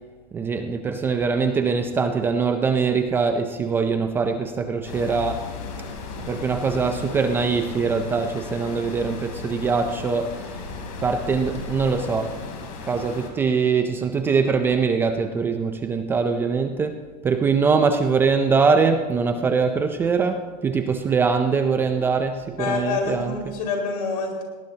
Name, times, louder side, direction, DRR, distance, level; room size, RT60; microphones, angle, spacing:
voice 1, 0.3-5.5 6.3-10.5 11.0-12.4 12.8-23.6, right 5 dB, 10° right, 7 dB, 0.4 m, -23 dB
sound 1, 4.9-13.3, left 4 dB, 55° left, 3.5 m, -35 dB
voice 2, 22.6-24.4, left 4 dB, 70° left, 1 dB, 4.9 m, -26 dB
20.5 x 18.5 x 2.8 m, 1.4 s
supercardioid pair, 170°, 21 cm